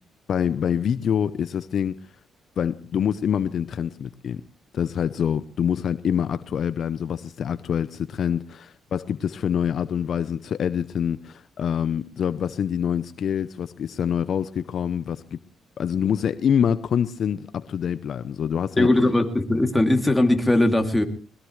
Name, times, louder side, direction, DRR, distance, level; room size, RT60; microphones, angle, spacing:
voice 1, 0.3-2.0 2.6-4.4 4.7-15.4 15.8-18.9, left 8 dB, 60° left, 0.7 m, -25 dB
voice 2, 18.8-21.0, left 1 dB, 10° left, 2.8 m, -19 dB
21.0 x 21.0 x 3.2 m
cardioid pair, 90°, 0 cm